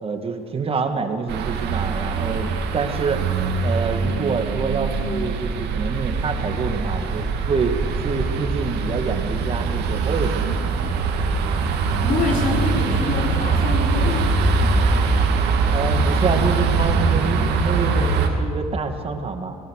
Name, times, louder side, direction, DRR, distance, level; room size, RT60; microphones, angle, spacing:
voice 1, 0.0-3.2 3.6-10.5 15.7-19.6, right 4 dB, 35° right, 6 dB, 2.1 m, -26 dB
sound 1, 1.3-18.3, right 4 dB, 80° right, 2.4 m, -22 dB
voice 2, 12.0-14.4, left 3 dB, 55° left, 0 dB, 5.5 m, -25 dB
25.0 x 19.0 x 6.6 m, 2.3 s
cardioid pair, 110°, 17 cm